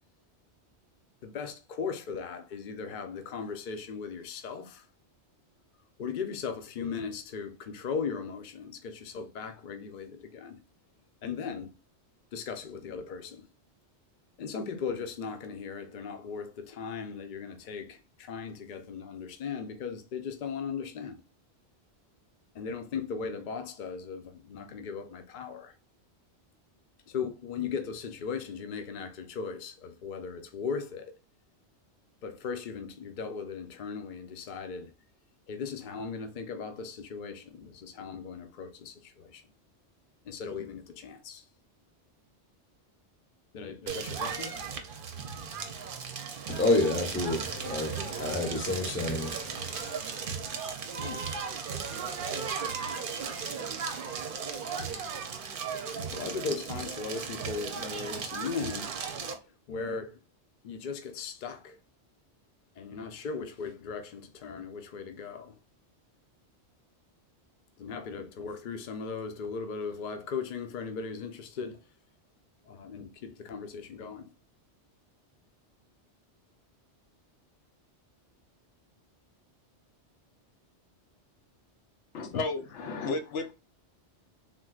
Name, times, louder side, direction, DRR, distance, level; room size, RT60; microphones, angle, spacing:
voice 1, 1.2-4.9 6.0-10.6 11.2-11.7 12.3-13.5 14.4-21.2 22.5-25.7 27.1-31.2 32.2-34.9 35.5-39.4 40.2-41.5 43.5-44.6 51.0-51.4 56.1-60.2 60.6-61.8 62.8-65.6 67.8-71.8 72.6-74.3, left 5 dB, 55° left, 0.6 m, -38 dB
Crackle, 43.9-59.3, right 6 dB, 55° right, 0.7 m, -36 dB
voice 2, 46.5-50.0, left 2 dB, 15° left, 0.6 m, -29 dB
voice 3, 82.1-83.5, left 3 dB, 85° left, 1.0 m, -33 dB
3.6 x 2.6 x 2.3 m
omnidirectional pair, 1.2 m